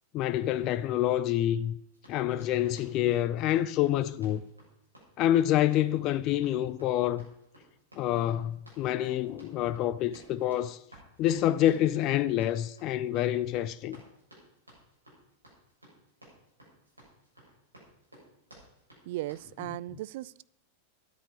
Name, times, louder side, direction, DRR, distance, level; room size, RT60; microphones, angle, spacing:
voice 1, 0.1-1.7 2.1-4.4 5.2-7.3 8.0-10.8 11.2-14.0, left 12 dB, 40° left, 0.5 m, -27 dB
Run, 1.9-19.5, right 1 dB, 85° right, 6.7 m, -56 dB
voice 2, 19.1-20.4, right 16 dB, 50° right, 0.4 m, -37 dB
9.7 x 8.8 x 9.7 m
figure-of-eight pair, 90°, 0 cm